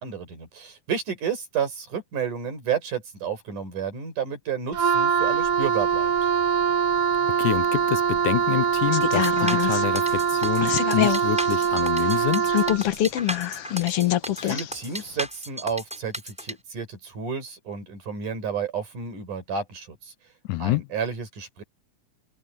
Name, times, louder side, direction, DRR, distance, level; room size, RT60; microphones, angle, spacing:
voice 1, 0.0-6.3 14.4-20.1 20.6-21.6, right 6 dB, 85° right, 6.7 m, -31 dB
Wind instrument woodwind instrument, 4.7-12.9, right 7 dB, 60° right, 2.0 m, -23 dB
voice 2, 7.4-12.5 20.5-20.9, left 17 dB, 85° left, 2.2 m, -27 dB
sound 1, 8.9-14.7 15.0-15.1, left 13 dB, 60° left, 1.7 m, -25 dB
sound 2, 9.0-16.5, equal, ahead, 7.1 m, -34 dB
omnidirectional pair, 3.5 m